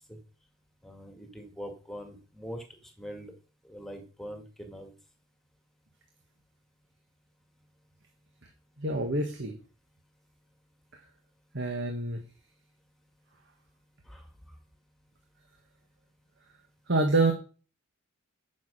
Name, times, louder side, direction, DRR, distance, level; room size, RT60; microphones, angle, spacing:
voice 1, 0.8-3.3 3.6-4.9 14.1-14.6, equal, ahead, 4 dB, 2.0 m, -43 dB
voice 2, 8.8-9.5 11.5-12.2 16.9-17.3, right 2 dB, 55° right, 5 dB, 1.4 m, -26 dB
9.4 x 6.6 x 6.5 m, 0.37 s
head